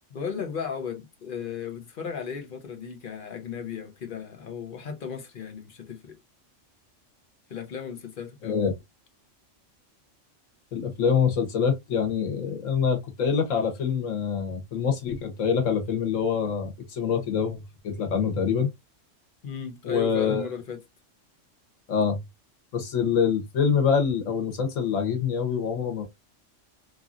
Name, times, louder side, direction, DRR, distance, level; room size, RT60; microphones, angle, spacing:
voice 1, 0.1-6.2 7.5-8.7 19.4-20.8, left 7 dB, 50° left, 0.9 m, -35 dB
voice 2, 10.7-18.7 19.8-20.5 21.9-22.2 22.7-26.0, left 6 dB, 85° left, 1.4 m, -25 dB
3.0 x 2.6 x 2.4 m
omnidirectional pair, 1.3 m